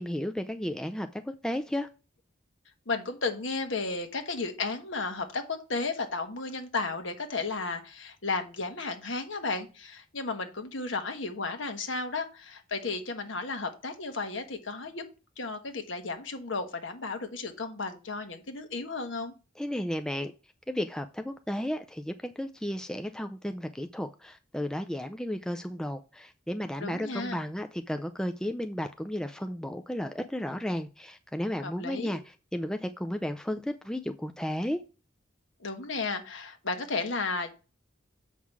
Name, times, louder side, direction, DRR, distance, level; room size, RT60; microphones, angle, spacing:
voice 1, 0.0-1.9 19.6-20.3 20.7-34.8, equal, 5° left, 0.4 m, -33 dB
voice 2, 2.9-15.0 15.4-19.3 26.8-27.4 31.6-32.2 35.6-37.5, left 3 dB, 65° left, 1.4 m, -34 dB
7.3 x 5.6 x 4.7 m
head